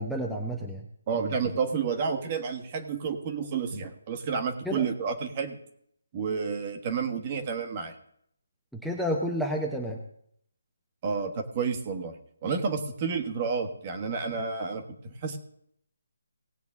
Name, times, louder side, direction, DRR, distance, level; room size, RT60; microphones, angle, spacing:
voice 1, 0.0-0.9 1.2-1.3 4.6-4.8 8.7-10.0, equal, ahead, -1 dB, 0.8 m, -30 dB
voice 2, 1.1-5.6 6.1-7.9 11.0-12.1 12.4-15.4, right 5 dB, 30° right, 5 dB, 1.4 m, -30 dB
18.5 x 7.8 x 3.6 m, 0.69 s
figure-of-eight pair, 160°, 0 cm